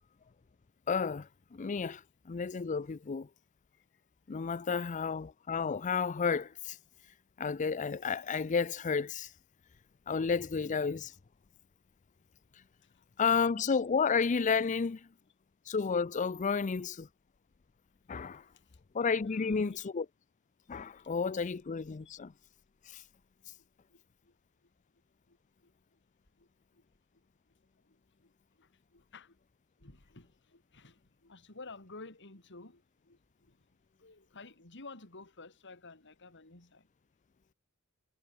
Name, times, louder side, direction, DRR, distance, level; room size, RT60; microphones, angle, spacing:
voice 1, 0.9-3.3 4.3-6.8 7.4-9.3 10.1-11.1 13.2-15.1 15.7-17.1 18.1-18.4 18.9-20.1 20.7-22.3 22.9-23.0, left 5 dB, 35° left, 0.5 m, -31 dB
voice 2, 18.3-18.8 19.2-19.9 23.9-24.3 25.3-26.0 26.4-26.5 26.7-26.8 28.2-28.3 28.6-29.4 29.8-33.2 33.5-33.6 34.0-36.9, left 3 dB, 55° left, 3.2 m, -52 dB
head